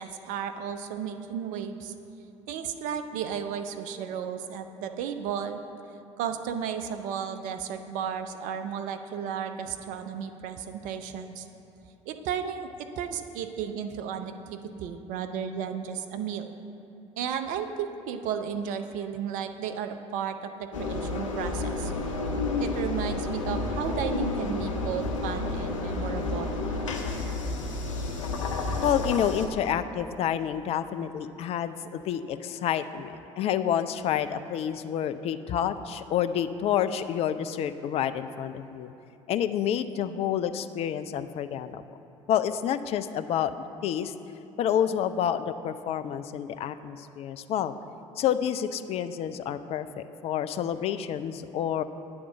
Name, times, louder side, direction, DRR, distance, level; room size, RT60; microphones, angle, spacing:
voice 1, 0.0-1.9 2.5-5.6 6.2-11.5 12.1-16.5 17.2-21.9 22.6-26.5, right 8 dB, 55° right, 8 dB, 0.5 m, -34 dB
Engine, 20.7-29.5, left 2 dB, 80° left, 0.7 m, -30 dB
voice 2, 28.8-38.9 39.3-41.8 42.3-43.5 43.8-44.1 44.6-47.7 48.2-51.8, left 9 dB, 40° left, 11 dB, 0.4 m, -29 dB
8.7 x 3.6 x 6.8 m, 2.8 s
figure-of-eight pair, 60°, 16 cm